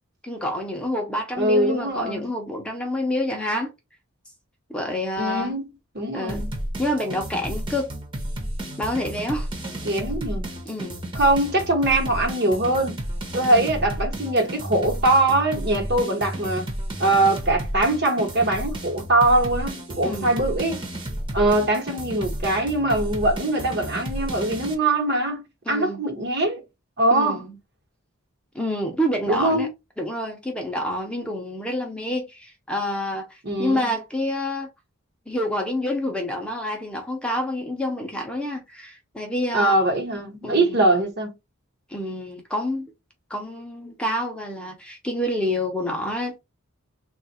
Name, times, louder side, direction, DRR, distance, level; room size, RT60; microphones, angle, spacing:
voice 1, 0.2-3.7 4.7-5.5 6.1-6.4 6.8-7.9 8.8-9.5 10.7-11.0 13.5-13.7 20.0-20.3 25.7-26.0 27.1-27.6 28.5-29.7 30.0-34.7 35.3-39.7 40.4-40.8 41.9-42.9 43.3-46.4, left 1 dB, 5° left, 0.6 m, -28 dB
voice 2, 1.4-2.3 5.2-5.7 5.9-6.5 9.8-10.5 11.1-13.0 13.3-16.7 17.0-20.8 21.3-25.4 25.7-26.6 27.0-27.4 29.3-29.7 33.4-33.9 39.5-41.3, right 2 dB, 50° right, 1.1 m, -22 dB
sound 1, 6.3-24.7, right 1 dB, 25° right, 0.9 m, -32 dB
3.4 x 2.4 x 4.0 m
head